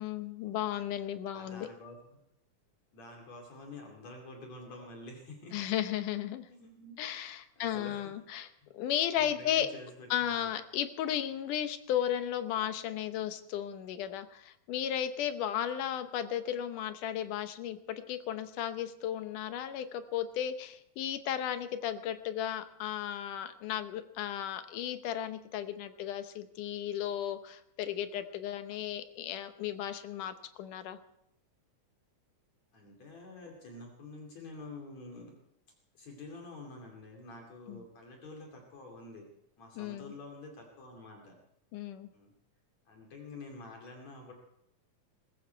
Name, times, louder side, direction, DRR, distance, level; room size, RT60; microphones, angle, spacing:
voice 1, 0.0-1.7 5.5-6.5 7.0-8.5 8.7-9.7 10.1-31.0 37.7-37.8 39.8-40.1 41.7-42.1, left 10 dB, 70° left, 10 dB, 2.4 m, -35 dB
voice 2, 1.3-2.2 2.9-5.6 6.5-7.0 7.6-8.1 8.6-8.7 9.1-10.5 32.7-35.3 36.0-39.3 39.6-41.4 42.1-42.3 42.9-44.3, left 2 dB, 55° left, 1 dB, 3.6 m, -48 dB
21.0 x 15.0 x 4.5 m, 0.77 s
omnidirectional pair, 4.0 m